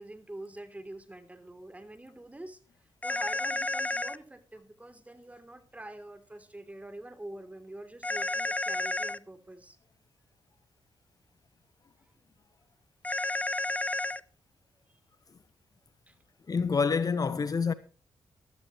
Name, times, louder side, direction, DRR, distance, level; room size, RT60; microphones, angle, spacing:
voice 1, 0.0-9.8 16.1-16.2, right 1 dB, 15° right, 3.2 m, -46 dB
sound 1, 3.0-4.2 8.0-9.2 13.0-14.2, left 2 dB, 15° left, 0.7 m, -31 dB
voice 2, 16.5-17.7, left 5 dB, 45° left, 1.0 m, -27 dB
16.0 x 13.0 x 3.1 m
cardioid pair, 60°, 9 cm